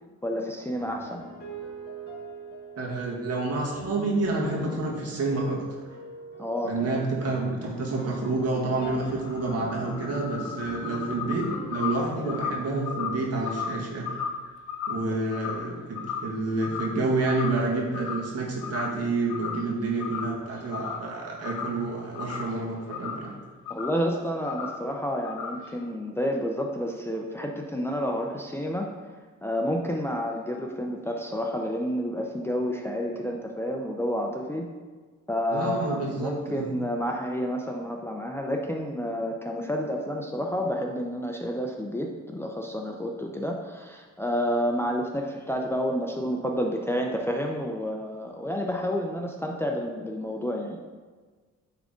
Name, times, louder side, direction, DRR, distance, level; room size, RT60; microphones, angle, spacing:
voice 1, 0.2-1.2 6.4-7.0 12.1-12.4 15.4-15.5 23.7-28.9 29.4-34.7 35.3-50.8, equal, 10° left, 1 dB, 0.6 m, -30 dB
sound 1, 0.7-13.4, right 1 dB, 30° left, 1.7 m, -42 dB
voice 2, 2.8-5.6 6.6-14.1 14.9-23.3 35.5-36.7, right 2 dB, 55° right, -2 dB, 1.9 m, -29 dB
sound 2, 8.7-16.4 16.6-17.0 17.3-18.3 18.6-19.0 19.3-19.7 20.0-21.1 21.4-23.3 23.7-24.0 24.5-24.8 25.2-25.7, left 6 dB, 75° left, 0.8 m, -35 dB
8.8 x 3.7 x 3.7 m, 1.4 s
cardioid pair, 90°, 30 cm